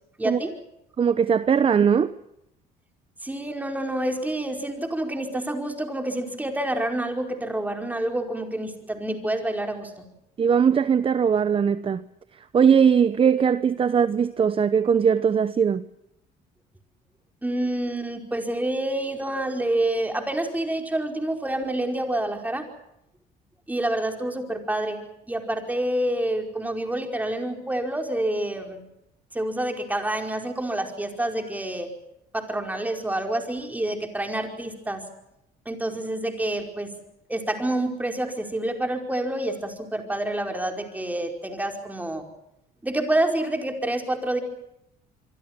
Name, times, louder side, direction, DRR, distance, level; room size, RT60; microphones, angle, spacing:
voice 1, 0.2-0.5 3.2-9.9 17.4-22.7 23.7-25.0 25.3-28.8 29.3-31.9 32.3-35.0 35.6-36.9 37.3-42.3 42.8-44.4, right 1 dB, 10° right, 4.9 m, -28 dB
voice 2, 1.0-2.1 10.4-12.0 12.5-15.8, right 7 dB, 35° right, 0.9 m, -20 dB
26.5 x 24.0 x 6.1 m
cardioid pair, 110°, 17 cm